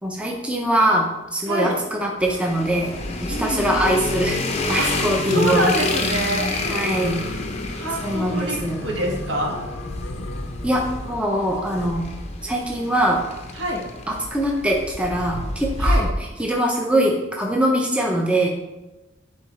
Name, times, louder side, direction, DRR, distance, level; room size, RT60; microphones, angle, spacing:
voice 1, 0.0-2.9 3.2-4.4 4.7-5.7 6.7-7.1 8.0-8.8 10.6-12.0 12.4-13.2 14.1-16.1 16.4-18.5, right 1 dB, 5° right, -1 dB, 0.6 m, -22 dB
voice 2, 1.5-1.8 3.3-3.7 4.8-5.0 5.3-6.8 7.1-7.2 7.7-9.6 13.5-13.8 15.8-16.0, right 1 dB, 65° right, -2 dB, 1.6 m, -25 dB
sound 1, 2.2-16.1, left 2 dB, 35° left, 0.6 m, -28 dB
sound 2, 2.6-2.9 4.5-5.0 6.4-11.9, left 2 dB, 80° left, 0.7 m, -36 dB
10.5 x 3.8 x 3.2 m, 1.0 s
head